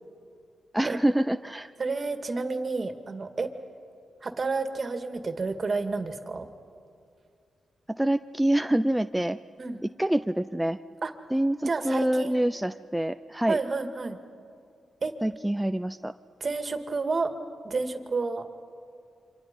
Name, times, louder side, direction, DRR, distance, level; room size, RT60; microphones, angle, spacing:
voice 1, 0.7-1.7 8.0-9.4 10.0-10.8 11.3-13.6 15.2-16.1, right 1 dB, 5° right, 9 dB, 0.5 m, -26 dB
voice 2, 1.8-3.5 4.2-6.5 9.6-9.8 11.0-11.1 11.6-12.3 13.5-14.2 15.0-15.1 16.4-17.3 17.6-18.5, right 3 dB, 45° right, 7 dB, 2.1 m, -30 dB
29.0 x 25.5 x 5.5 m, 2.4 s
cardioid pair, 65°, 0 cm